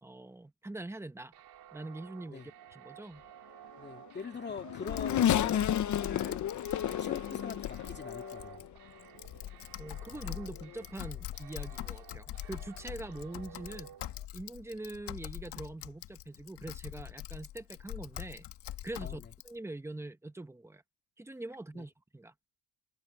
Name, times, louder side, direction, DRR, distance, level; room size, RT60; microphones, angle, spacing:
voice 1, 0.0-1.3 1.7-2.4 2.7-3.2 9.8-13.9 14.3-18.5 18.8-20.8 21.2-22.3, right 2 dB, 5° right, 1.0 m, -43 dB
sound 1, 1.3-14.3, right 12 dB, 60° right, 5.4 m, -54 dB
voice 2, 3.8-6.4 6.9-8.6 19.0-19.3 21.7-21.9, left 5 dB, 25° left, 2.3 m, -43 dB
Race car auto racing / Accelerating revving vroom, 4.1-8.7 9.4-9.5 10.6-10.8, left 10 dB, 40° left, 0.7 m, -32 dB
Typing, 4.9-19.5, left 13 dB, 65° left, 1.5 m, -44 dB
cardioid pair, 150°, 45 cm